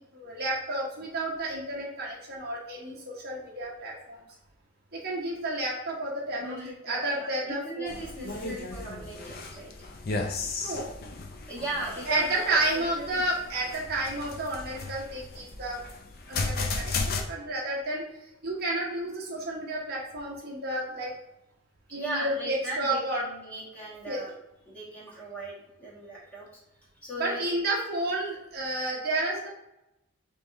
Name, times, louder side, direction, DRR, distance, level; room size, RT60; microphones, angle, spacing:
voice 1, 0.1-4.2 4.9-6.5 6.8-7.9 10.6-10.9 12.1-15.8 16.3-18.0 18.4-21.1 21.9-23.3 24.1-24.2 27.2-29.5, right 1 dB, 50° right, -4 dB, 1.1 m, -31 dB
voice 2, 6.3-9.9 11.5-13.2 21.9-24.3 24.6-26.5 27.0-27.5, right 2 dB, 5° left, -7 dB, 1.3 m, -38 dB
sound 1, 7.9-17.2, left 3 dB, 45° left, 0.5 m, -35 dB
3.5 x 3.3 x 3.9 m, 0.87 s
head